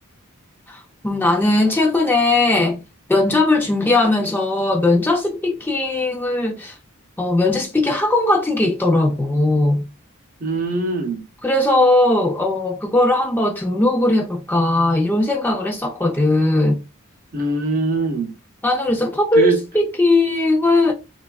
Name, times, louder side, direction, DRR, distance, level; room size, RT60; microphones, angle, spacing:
voice 1, 0.7-2.8 3.1-6.8 7.2-9.8 11.4-16.8 18.6-20.9, left 2 dB, 10° left, 0.3 m, -18 dB
voice 2, 10.4-11.2 17.3-18.4 19.4-19.6, right 2 dB, 40° right, 0.6 m, -22 dB
3.2 x 2.3 x 2.2 m
head